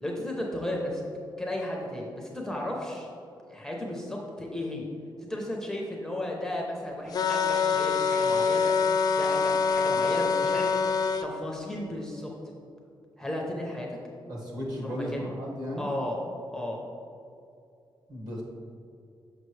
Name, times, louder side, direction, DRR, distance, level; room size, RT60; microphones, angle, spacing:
voice 1, 0.0-1.1 1.4-3.1 3.5-4.9 5.2-8.7 9.1-10.7 11.2-12.3 13.2-13.9 14.8-15.3 15.8-16.2 16.5-16.8, left 1 dB, 5° left, -2 dB, 0.6 m, -34 dB
sound 1, 7.1-11.3, left 5 dB, 50° left, 0.4 m, -25 dB
voice 2, 14.3-15.9 18.1-18.4, equal, 50° right, -3 dB, 1.5 m, -34 dB
6.5 x 6.0 x 3.1 m, 2.6 s
wide cardioid pair, 160°, 9 cm